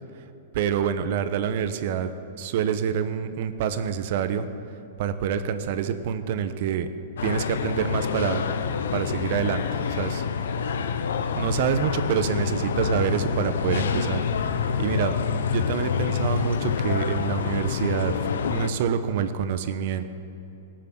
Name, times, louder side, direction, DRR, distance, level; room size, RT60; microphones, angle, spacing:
voice 1, 0.5-2.1 2.4-4.5 5.0-6.9 7.2-8.4 8.9-10.2 11.3-14.2 14.8-15.1 15.5-18.2 18.5-20.1, right 8 dB, 60° right, 10 dB, 0.9 m, -26 dB
sound 1, 7.2-18.7, left 6 dB, 80° left, 0.7 m, -27 dB
18.5 x 6.6 x 7.6 m, 2.9 s
hypercardioid pair, 130°, 0 cm